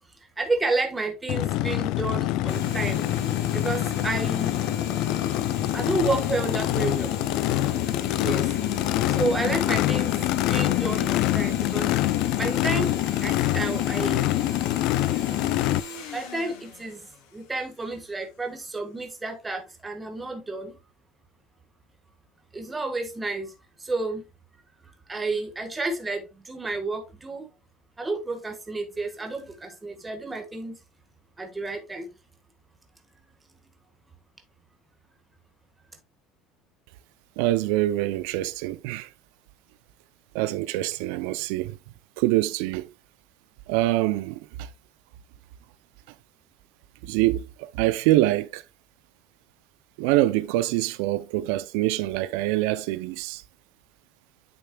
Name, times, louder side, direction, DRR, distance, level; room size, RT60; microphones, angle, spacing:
voice 1, 0.4-3.0 3.5-4.5 5.7-7.2 8.2-8.5 9.1-11.9 12.3-14.3 16.1-20.8 22.5-23.5 23.8-24.2 25.1-27.5 28.0-30.8 31.4-32.1, right 2 dB, 10° right, 1.5 m, -30 dB
Race car auto racing / Idling / Accelerating revving vroom, 1.3-15.8, left 16 dB, 60° left, 0.4 m, -25 dB
sound 1, 2.5-17.7, equal, 80° left, 2.3 m, -38 dB
voice 2, 37.4-39.1 40.3-41.8 42.2-42.9 43.7-44.7 47.0-48.6 50.0-53.4, right 16 dB, 80° right, 0.5 m, -25 dB
8.8 x 6.7 x 2.3 m
cardioid pair, 165°, 0 cm